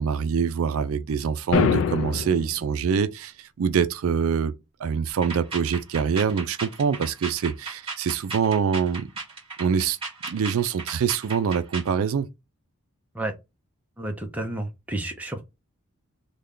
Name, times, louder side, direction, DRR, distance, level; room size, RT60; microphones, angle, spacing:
voice 1, 0.0-4.5 4.8-9.1 9.6-10.0 10.2-12.3, right 6 dB, 75° right, 0.4 m, -25 dB
sound 1, 1.5-2.5, left 6 dB, 65° left, 0.3 m, -23 dB
sound 2, 5.1-11.9, right 4 dB, 25° right, 1.8 m, -36 dB
voice 2, 14.0-15.4, right 1 dB, 5° right, 0.5 m, -31 dB
3.3 x 2.2 x 3.7 m
head